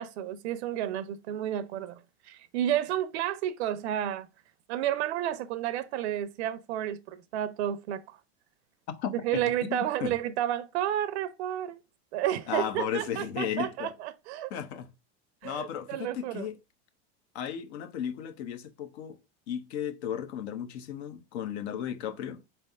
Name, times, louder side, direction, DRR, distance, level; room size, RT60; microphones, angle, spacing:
voice 1, 0.0-4.3 4.7-8.2 9.1-11.8 12.1-14.5 15.4-16.5, right 11 dB, 70° right, 0.6 m, -31 dB
voice 2, 8.9-9.4 9.7-10.1 12.5-13.9 14.5-14.9 15.4-16.5 17.3-19.2 19.5-22.4, left 9 dB, 75° left, 0.9 m, -35 dB
4.4 x 3.4 x 3.4 m
hypercardioid pair, 100°, 34 cm